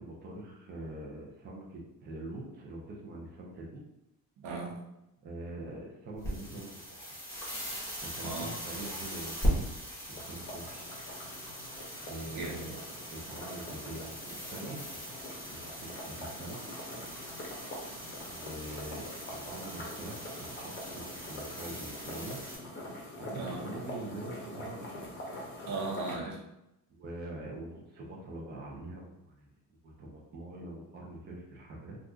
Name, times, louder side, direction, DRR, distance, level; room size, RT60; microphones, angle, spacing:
voice 1, 0.0-3.8 5.2-7.2 8.0-10.8 12.0-12.8 13.1-15.0 15.5-16.6 18.2-20.2 20.5-22.5 23.2-24.9 26.9-29.5 29.8-32.0, right 2 dB, 30° right, -1 dB, 0.6 m, -44 dB
voice 2, 4.4-4.8 8.2-8.5 12.4-12.6 23.3-23.6 25.7-26.4, right 3 dB, 85° right, -1 dB, 0.8 m, -37 dB
sound 1, 6.1-22.6, equal, 10° left, 1.1 m, -39 dB
sound 2, 10.1-26.2, left 1 dB, 30° left, 0.7 m, -45 dB
2.6 x 2.4 x 3.5 m, 0.89 s
cardioid pair, 145°, 36 cm